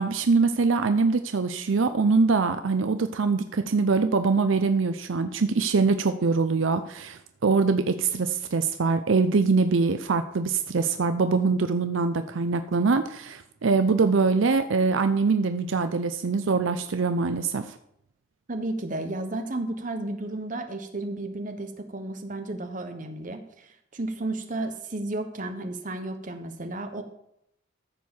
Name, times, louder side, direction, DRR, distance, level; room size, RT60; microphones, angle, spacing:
voice 1, 0.0-17.8, right 4 dB, 70° right, 9 dB, 0.6 m, -23 dB
voice 2, 18.5-27.0, right 2 dB, 40° right, 6 dB, 1.2 m, -33 dB
14.0 x 4.7 x 7.1 m, 0.78 s
head